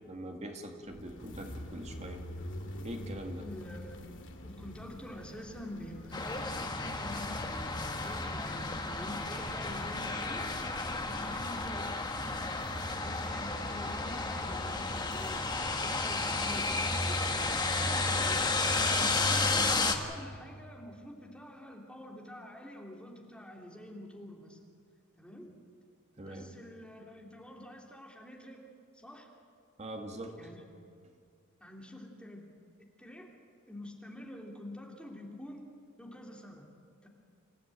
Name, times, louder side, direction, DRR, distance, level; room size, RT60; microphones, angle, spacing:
voice 1, 0.1-2.2 2.8-3.5 13.5-13.8 26.2-26.5 29.8-30.4, right 1 dB, 30° right, 3 dB, 2.1 m, -42 dB
sound 1, 0.8-19.4, left 1 dB, 60° left, 2.1 m, -48 dB
voice 2, 3.4-4.1 4.4-10.5 11.0-11.9 13.0-15.5 15.8-17.2 18.0-18.4 18.9-24.6 25.2-25.6 26.2-28.6 28.9-29.3 30.4-30.6 31.6-32.5 33.0-33.3 33.7-35.7 36.0-36.7 37.0-37.1, left 1 dB, 5° left, 0 dB, 2.8 m, -47 dB
sound 2, 6.1-20.0, left 3 dB, 20° left, 1.6 m, -32 dB
27.0 x 15.0 x 8.9 m, 2.2 s
head